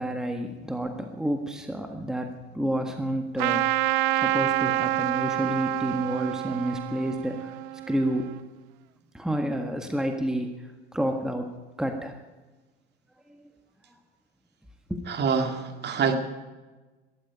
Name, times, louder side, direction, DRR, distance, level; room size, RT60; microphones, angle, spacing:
voice 1, 0.0-3.7 4.2-7.5 7.9-8.3 9.1-10.5 10.9-11.5 11.8-12.1 14.9-15.0, right 1 dB, ahead, 5 dB, 1.6 m, -29 dB
Trumpet, 3.4-8.4, right 17 dB, 55° right, 0.7 m, -27 dB
voice 2, 15.1-16.1, right 6 dB, 30° right, 5 dB, 2.2 m, -25 dB
20.0 x 13.5 x 5.1 m, 1.2 s
figure-of-eight pair, 70°, 32 cm